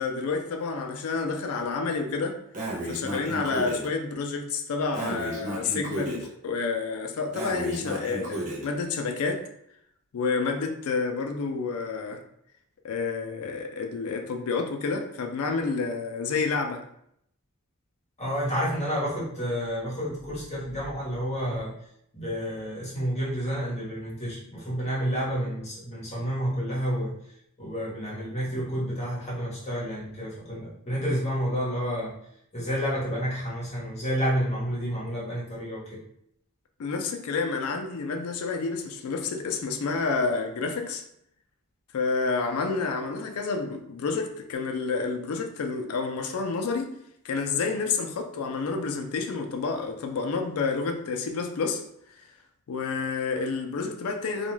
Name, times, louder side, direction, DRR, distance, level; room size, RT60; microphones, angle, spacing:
voice 1, 0.0-2.4 2.8-9.4 10.1-12.2 12.8-16.8 36.8-41.0 41.9-47.0 47.2-51.8 52.7-54.5, left 4 dB, 65° left, 4 dB, 0.4 m, -29 dB
Breathing, 2.5-3.9 4.9-6.2 7.3-8.7, right 1 dB, 35° right, 0.6 m, -33 dB
voice 2, 18.2-21.7 22.1-27.1 27.6-32.1 32.5-36.0, equal, 30° left, -7 dB, 0.9 m, -30 dB
2.4 x 2.2 x 3.0 m, 0.74 s
head